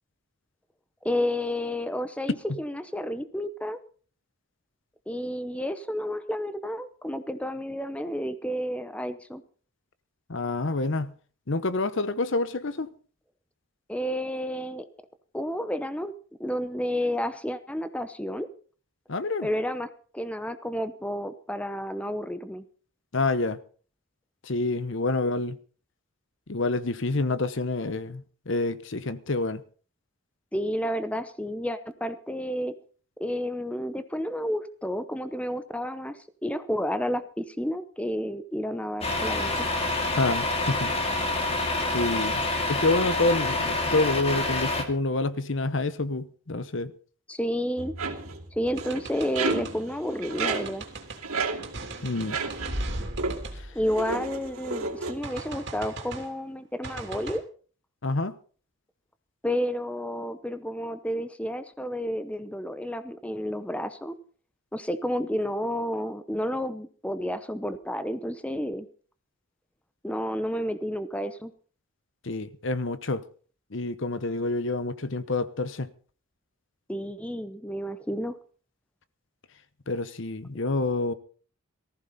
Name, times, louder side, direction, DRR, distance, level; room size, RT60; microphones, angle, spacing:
voice 1, 1.0-3.8 5.1-9.4 13.9-14.9 15.3-16.1 16.4-18.5 19.4-22.6 30.5-32.7 33.2-39.5 47.3-47.9 48.5-50.9 53.7-57.4 59.4-64.1 64.7-68.9 70.0-71.5 76.9-78.4, equal, 5° left, 0.7 m, -31 dB
voice 2, 10.3-11.1 11.5-12.9 19.1-19.5 23.1-23.6 24.4-25.6 26.5-29.6 40.1-40.9 41.9-42.4 42.7-46.9 52.0-52.4 58.0-58.3 72.2-73.2 73.7-75.9 79.9-81.1, left 2 dB, 60° left, 0.9 m, -27 dB
Truck, 39.0-44.8, left 2 dB, 30° left, 2.2 m, -27 dB
sound 1, 47.8-52.9 53.2-53.5 53.9-55.2, right 4 dB, 85° right, 2.8 m, -32 dB
sound 2, 48.8-49.8 50.4-51.2 51.6-54.5 55.2-56.3 56.8-57.4, right 2 dB, 50° right, 3.1 m, -37 dB
18.5 x 14.5 x 4.2 m
head